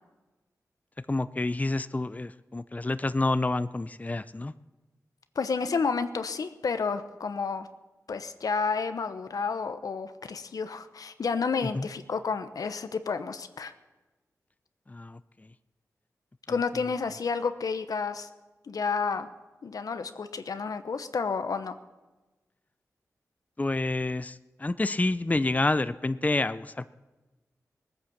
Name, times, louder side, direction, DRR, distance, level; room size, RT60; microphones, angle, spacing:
voice 1, 1.1-4.5 11.8-11.9 14.9-15.2 23.6-26.9, left 2 dB, 25° left, 14 dB, 0.5 m, -28 dB
voice 2, 5.4-7.7 8.1-13.7 16.5-18.3 18.6-19.3 19.6-21.7, left 5 dB, 80° left, 10 dB, 0.9 m, -30 dB
19.0 x 9.4 x 7.3 m, 1.1 s
cardioid pair, 50°, 6 cm